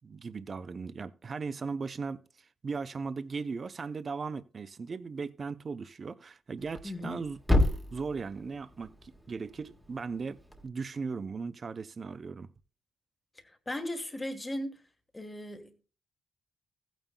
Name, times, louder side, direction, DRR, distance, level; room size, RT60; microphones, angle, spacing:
voice 1, 0.0-2.2 2.6-7.4 7.9-12.5, right 4 dB, 35° right, 0.6 m, -37 dB
Thump thud, 6.6-10.7, left 1 dB, ahead, 1.4 m, -32 dB
voice 2, 6.8-7.2 13.7-14.8 15.1-15.8, left 1 dB, 15° left, 1.4 m, -37 dB
16.0 x 9.0 x 2.2 m
cardioid pair, 140°, 0 cm